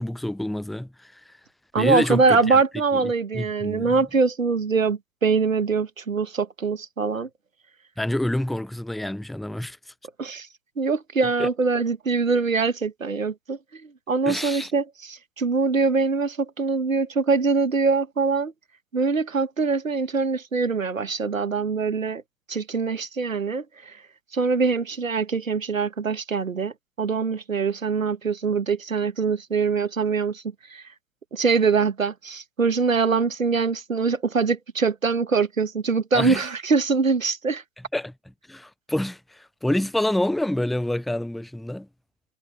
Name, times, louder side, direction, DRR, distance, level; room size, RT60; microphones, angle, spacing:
voice 1, 0.0-1.4 1.8-2.6 3.0-3.9 8.0-9.8 11.4-11.5 14.3-14.7 36.1-36.4 37.9-38.1 38.5-41.9, left 1 dB, ahead, 0.3 m, -27 dB
voice 2, 1.7-7.3 10.2-10.5 10.8-18.5 18.9-22.2 22.5-24.0 24.3-30.4 30.7-30.9 31.3-37.6, right 4 dB, 85° right, 1.4 m, -23 dB
figure-of-eight pair, 105°, 39 cm